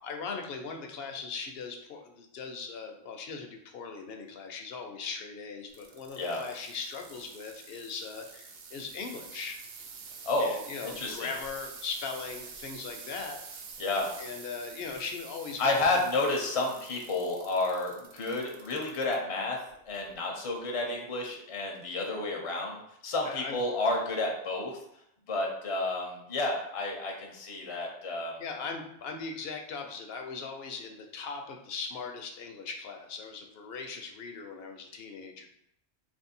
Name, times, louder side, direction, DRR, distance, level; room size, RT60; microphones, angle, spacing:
voice 1, 0.0-9.6 10.4-13.4 14.2-15.9 23.3-23.6 28.4-35.5, left 5 dB, 65° left, 4 dB, 0.8 m, -39 dB
sound 1, 5.7-19.2 19.7-20.1 20.8-20.9, right 5 dB, 65° right, 0.8 m, -47 dB
voice 2, 10.2-10.6 10.8-11.3 13.8-14.1 15.6-24.8 25.3-28.4, left 2 dB, 35° left, 0 dB, 0.6 m, -31 dB
3.0 x 2.6 x 4.2 m, 0.77 s
omnidirectional pair, 1.1 m